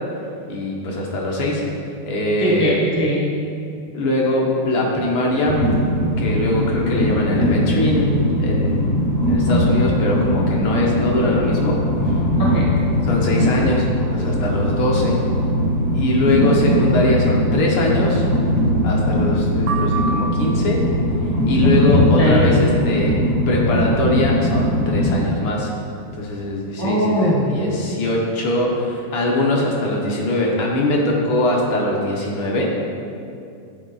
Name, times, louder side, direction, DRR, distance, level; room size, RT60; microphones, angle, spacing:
voice 1, 0.5-1.6 2.1-2.6 3.9-5.7 6.2-8.9 9.3-11.8 13.0-13.9 14.1-15.2 15.9-18.2 18.8-20.8 21.5-25.7 26.2-32.7, left 1 dB, 70° left, -2 dB, 1.8 m, -22 dB
voice 2, 2.4-3.4 12.4-12.8 22.2-22.6 26.8-27.6, equal, 30° right, -5 dB, 0.3 m, -20 dB
Train, 5.5-25.2, equal, 45° left, 0.9 m, -20 dB
sound 1, 19.7-20.9, right 3 dB, 90° right, 1.5 m, -28 dB
8.7 x 4.0 x 3.9 m, 2.5 s
omnidirectional pair, 2.3 m